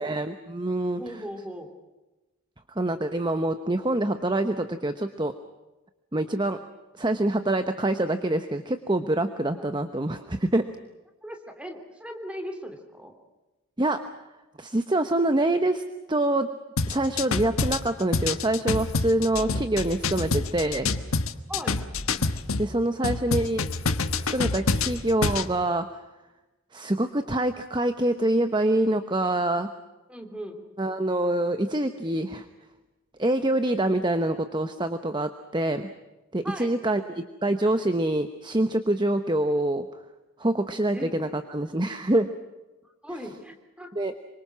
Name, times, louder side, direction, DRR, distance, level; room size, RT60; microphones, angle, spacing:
voice 1, 0.0-1.0 2.7-5.3 6.1-6.6 7.0-10.7 13.8-14.0 14.6-15.8 16.1-16.5 16.9-20.9 22.2-22.3 22.6-23.7 24.2-25.9 26.7-29.7 30.8-32.4 33.2-35.9 36.3-39.9 40.4-42.3 44.0-44.1, right 1 dB, 20° right, 9 dB, 0.9 m, -25 dB
voice 2, 1.0-1.7 9.5-9.7 11.2-13.1 19.4-19.5 21.5-21.8 30.1-30.6 36.4-36.7 40.9-41.1 41.7-41.8 42.8-43.9, equal, 5° right, 5 dB, 3.0 m, -38 dB
sound 1, 16.8-22.7 23.0-25.5, left 3 dB, 75° left, 1.4 m, -27 dB
26.5 x 24.5 x 6.2 m, 1.1 s
head